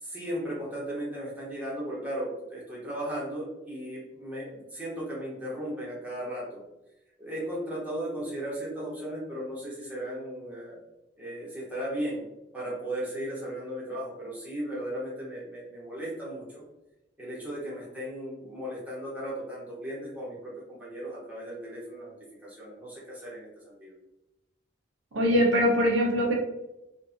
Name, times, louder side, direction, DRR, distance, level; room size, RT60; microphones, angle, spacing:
voice 1, 0.0-6.6 7.2-10.8 11.2-12.2 12.5-16.6 17.2-22.1 22.4-23.9, right 1 dB, 5° right, -7 dB, 0.7 m, -36 dB
voice 2, 25.1-26.3, equal, 85° right, -2 dB, 0.7 m, -22 dB
2.6 x 2.5 x 2.5 m, 0.93 s
head